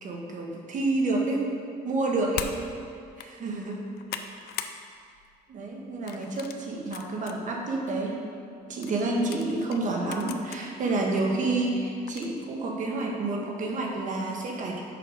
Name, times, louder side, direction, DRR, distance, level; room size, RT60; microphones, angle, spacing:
voice 1, 0.0-1.5 1.8-2.5 3.2-3.8 5.5-8.2 8.7-14.8, right 2 dB, 50° right, 0 dB, 1.4 m, -29 dB
sound 1, 2.3-2.6 3.1-3.3 3.7-4.8 5.1-5.4 6.1-7.4 7.9-8.0 8.8-10.6 11.2-11.3 12.1-12.4, left 9 dB, 70° left, 0.5 m, -39 dB
7.0 x 5.7 x 5.1 m, 2.3 s
cardioid pair, 110°, 17 cm